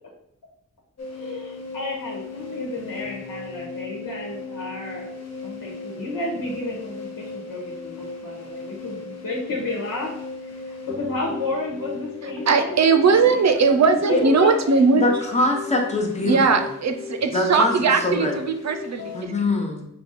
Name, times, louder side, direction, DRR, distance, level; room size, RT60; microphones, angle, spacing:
sound 1, 1.0-19.2, left 4 dB, 55° left, 0.9 m, -37 dB
voice 1, 1.1-5.2 5.4-7.9 8.2-10.1 10.4-14.8, left 2 dB, 85° left, -3 dB, 1.1 m, -32 dB
voice 2, 12.5-15.1 16.2-19.3, right 4 dB, 55° right, 7 dB, 0.6 m, -19 dB
voice 3, 14.9-16.7 17.3-17.7 18.0-18.3 19.1-19.9, left 2 dB, 20° left, 1 dB, 0.9 m, -23 dB
5.1 x 2.3 x 4.0 m, 0.73 s
wide cardioid pair, 120°, 32 cm